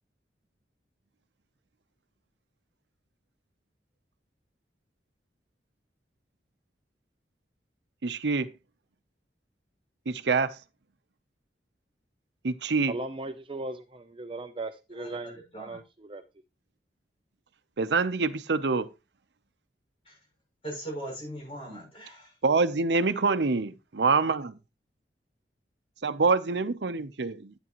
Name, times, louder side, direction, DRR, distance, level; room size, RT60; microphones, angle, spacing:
voice 1, 8.0-8.5 10.1-10.6 12.4-12.9 17.8-18.9 22.4-24.6 26.0-27.5, right 4 dB, 80° right, 0.7 m, -26 dB
voice 2, 12.9-16.2, right 2 dB, 30° right, 0.5 m, -38 dB
voice 3, 14.9-15.8 20.1-20.2 20.6-22.3, right 1 dB, 30° left, 6.8 m, -40 dB
11.0 x 9.2 x 3.0 m
head